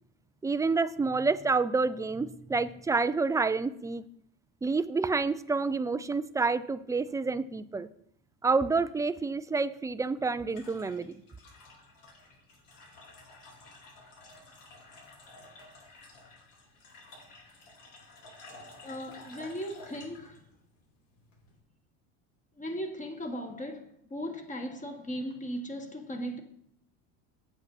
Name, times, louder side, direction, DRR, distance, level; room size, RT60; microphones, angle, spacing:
voice 1, 0.4-4.0 4.6-7.9 8.4-11.1, right 4 dB, 10° right, 0.3 m, -28 dB
sound 1, 9.9-21.6, left 2 dB, 65° left, 4.5 m, -52 dB
voice 2, 18.8-20.4 22.6-26.4, equal, 20° left, 1.6 m, -37 dB
8.1 x 8.0 x 5.6 m
supercardioid pair, 110°, 36 cm